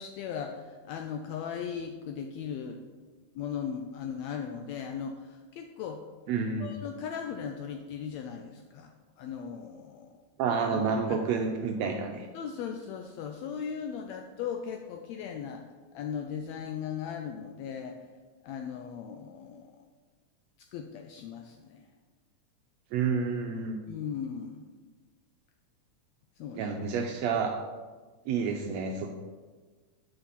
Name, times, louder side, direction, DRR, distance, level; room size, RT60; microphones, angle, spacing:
voice 1, 0.0-2.8 3.3-6.0 6.6-8.9 9.2-10.1 10.5-11.3 12.3-15.6 15.9-18.0 18.4-19.7 20.7-21.9 23.9-24.6 26.4-26.7, left 7 dB, 80° left, 5 dB, 1.5 m, -38 dB
voice 2, 6.3-6.7 10.4-12.3 22.9-23.8 26.6-27.5 28.3-29.1, right 5 dB, 80° right, 3 dB, 1.6 m, -29 dB
7.8 x 5.7 x 4.1 m, 1.4 s
omnidirectional pair, 3.5 m